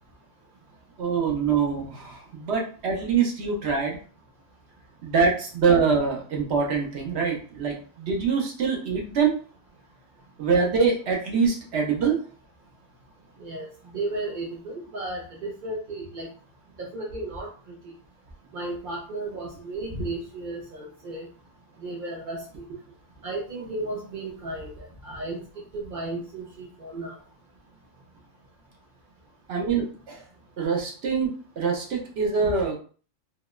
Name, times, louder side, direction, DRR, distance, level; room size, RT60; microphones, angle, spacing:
voice 1, 1.0-4.0 5.0-9.3 10.4-12.2 29.5-30.3 30.6-32.7, right 5 dB, 60° right, 0 dB, 0.8 m, -24 dB
voice 2, 13.9-16.3 16.8-17.5 18.5-21.3 21.8-22.6 23.2-25.4 25.7-27.1, right 2 dB, 85° right, -2 dB, 0.4 m, -34 dB
2.9 x 2.0 x 2.2 m, 0.40 s
omnidirectional pair, 1.5 m